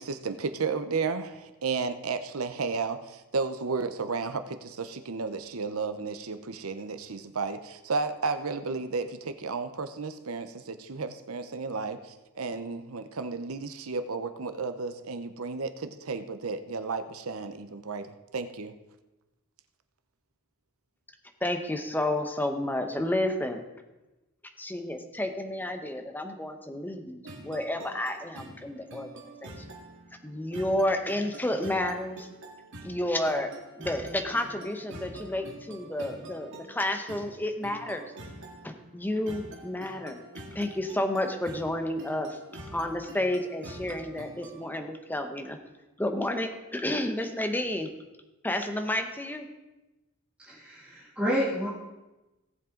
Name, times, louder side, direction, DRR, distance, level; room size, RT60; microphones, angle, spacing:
voice 1, 0.0-12.0 12.4-18.7, right 4 dB, 80° right, 10 dB, 0.8 m, -33 dB
voice 2, 21.4-23.6 24.6-29.1 29.4-29.5 30.2-32.3 32.8-33.5 33.8-38.0 38.6-40.2 40.5-42.4 42.7-45.6 46.0-47.9 48.4-49.5, left 1 dB, 10° left, 5 dB, 1.0 m, -31 dB
sound 1, 27.2-44.7, right 1 dB, 60° right, 2.1 m, -46 dB
voice 3, 50.5-51.7, equal, 5° right, -11 dB, 2.8 m, -29 dB
17.5 x 7.6 x 3.9 m, 1.1 s
head